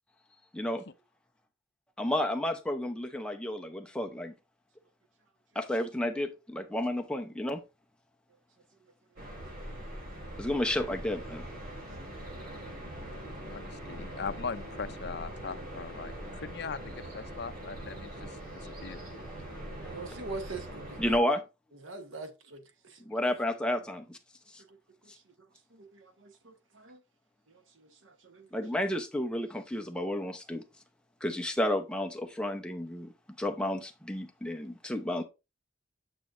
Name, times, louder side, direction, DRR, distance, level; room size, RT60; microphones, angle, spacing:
voice 1, 2.0-4.3 5.5-7.6 10.4-11.5 19.8-19.9 21.0-21.4 23.1-24.2 24.5-24.6 28.5-30.6 31.2-33.1 33.4-35.2, left 1 dB, 5° left, 0.8 m, -31 dB
sound 1, 9.2-21.2, right 1 dB, 50° right, 3.5 m, -42 dB
voice 2, 13.5-18.3 18.8-19.0, left 5 dB, 55° left, 0.5 m, -40 dB
voice 3, 19.8-21.4 21.8-23.3 24.7-24.8 25.3-25.4 25.7-27.0 27.5-28.5, right 3 dB, 75° right, 1.2 m, -44 dB
9.0 x 6.2 x 2.6 m
head